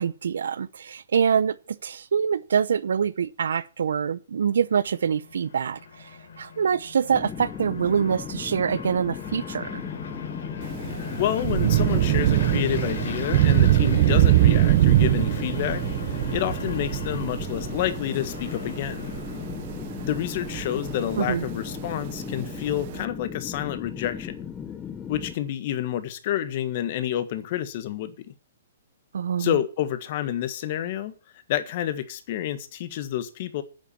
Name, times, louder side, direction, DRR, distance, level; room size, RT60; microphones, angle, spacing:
voice 1, 0.0-6.1 6.4-9.8 21.2-21.4 29.1-29.6, right 7 dB, 80° right, 0.7 m, -25 dB
sound 1, 4.6-21.8, left 5 dB, 75° left, 3.7 m, -38 dB
sound 2, 7.1-25.4, left 7 dB, 15° left, 1.0 m, -37 dB
Thunder / Rain, 10.6-23.0, right 15 dB, 45° right, 0.8 m, -23 dB
voice 2, 10.9-15.8 16.1-19.1 20.0-24.5 25.1-28.2 29.4-31.1 31.5-33.6, left 11 dB, 45° left, 1.6 m, -29 dB
9.8 x 7.4 x 8.5 m
hypercardioid pair, 145°, 0 cm